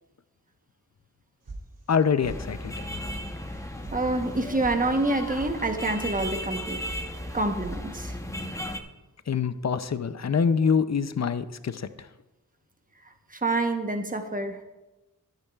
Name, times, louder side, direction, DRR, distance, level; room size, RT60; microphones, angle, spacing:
sound 1, 1.5-2.0 2.2-2.8 3.0-3.2 3.5-4.0 4.2-4.7 5.0-5.5 5.8-6.3 6.5-7.0 7.3-7.8, right 3 dB, 70° right, 2.8 m, -41 dB
voice 1, 1.9-2.9 9.3-12.1, left 6 dB, 50° left, 12 dB, 0.6 m, -25 dB
sound 2, 2.2-8.8, left 1 dB, 10° left, 0.9 m, -36 dB
voice 2, 3.9-6.8 7.3-8.2 13.3-14.6, right 2 dB, 25° right, 5 dB, 1.1 m, -27 dB
14.0 x 12.0 x 2.4 m, 1.0 s
wide cardioid pair, 90°, 34 cm